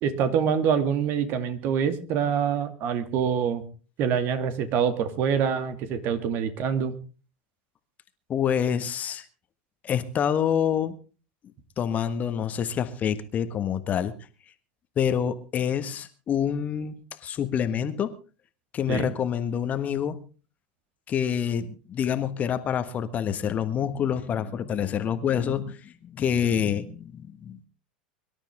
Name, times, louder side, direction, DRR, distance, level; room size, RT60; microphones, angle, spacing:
voice 1, 0.0-3.6 4.0-7.0 18.9-19.1, right 7 dB, 45° right, 10 dB, 2.3 m, -25 dB
voice 2, 8.3-9.2 9.8-10.9 11.8-14.1 15.0-18.1 18.7-20.2 21.1-27.7, left 8 dB, 30° left, 12 dB, 1.5 m, -27 dB
24.0 x 12.5 x 3.6 m, 0.35 s
figure-of-eight pair, 80°, 5 cm